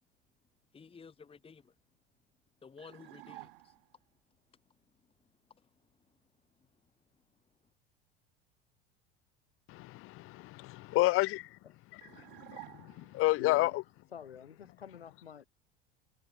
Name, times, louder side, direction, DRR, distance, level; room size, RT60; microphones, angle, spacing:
voice 1, 0.7-1.7 2.6-3.7, left 5 dB, 20° left, 1.3 m, -53 dB
sound 1, 2.8-4.0 12.0-13.3, right 19 dB, 65° right, 2.6 m, -51 dB
voice 2, 9.7-11.6 11.9-12.0 12.5-13.8, left 19 dB, 45° left, 0.9 m, -30 dB
voice 3, 12.1-12.5 13.0-13.8 14.1-15.5, left 8 dB, 80° left, 5.9 m, -49 dB
figure-of-eight pair, 75°, 30 cm